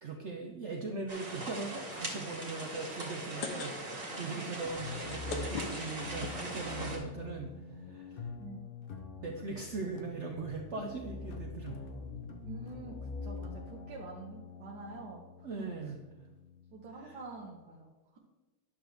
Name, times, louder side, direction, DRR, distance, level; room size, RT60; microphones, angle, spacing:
voice 1, 0.0-8.2 9.2-11.8 15.4-16.0 17.0-17.1, right 3 dB, 55° right, 2 dB, 0.8 m, -40 dB
sound 1, 1.1-7.0, right 1 dB, 40° right, 1.9 m, -41 dB
sound 2, 3.2-4.2 4.4-4.5 4.9-6.3 7.0-7.1 7.4-7.5 7.6-7.9, left 5 dB, 90° left, 1.5 m, -40 dB
sound 3, 4.6-17.5, left 4 dB, 50° left, 0.7 m, -45 dB
voice 2, 12.4-15.7 16.7-18.2, right 3 dB, 90° right, -2 dB, 1.5 m, -47 dB
10.5 x 6.3 x 3.4 m, 1.2 s
omnidirectional pair, 1.7 m